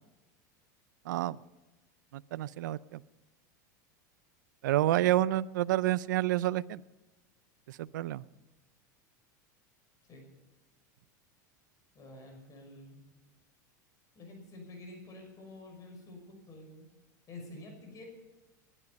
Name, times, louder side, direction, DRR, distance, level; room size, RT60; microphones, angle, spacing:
voice 1, 1.1-1.4 2.1-3.0 4.6-6.8 7.7-8.2, right 15 dB, 85° right, 19 dB, 0.6 m, -29 dB
voice 2, 11.9-13.1 14.1-16.9 17.3-18.1, left 2 dB, 35° left, 3 dB, 6.0 m, -49 dB
20.5 x 12.0 x 5.4 m, 1.1 s
supercardioid pair, 115°, 10 cm